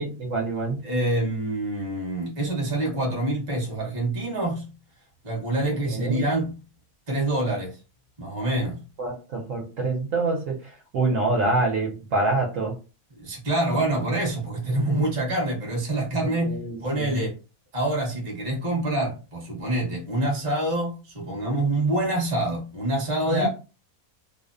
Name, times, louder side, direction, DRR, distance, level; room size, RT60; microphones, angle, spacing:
voice 1, 0.0-0.8 5.9-6.2 9.0-10.6 10.9-12.7 16.4-17.3 23.3-23.5, right 2 dB, 65° right, 0.9 m, -26 dB
voice 2, 0.8-4.7 5.2-6.5 7.1-7.8 8.2-8.8 13.2-17.3 17.7-23.5, right 1 dB, 30° right, 0.7 m, -26 dB
2.6 x 2.0 x 2.4 m
omnidirectional pair, 1.6 m